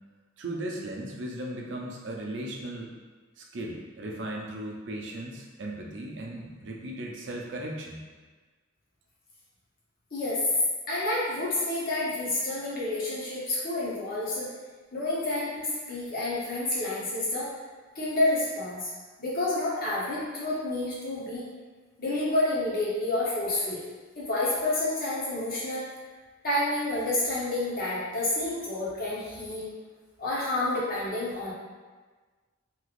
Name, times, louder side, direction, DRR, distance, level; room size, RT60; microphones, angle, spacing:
voice 1, 0.4-2.9 3.4-8.0, right 1 dB, 60° right, -1 dB, 0.5 m, -37 dB
voice 2, 10.1-10.4 10.9-14.5 14.9-17.5 17.9-18.9 19.2-21.4 22.0-23.8 24.2-25.8 26.4-29.7 30.2-31.5, left 2 dB, 45° left, -8 dB, 0.8 m, -29 dB
3.1 x 2.9 x 2.4 m, 1.4 s
head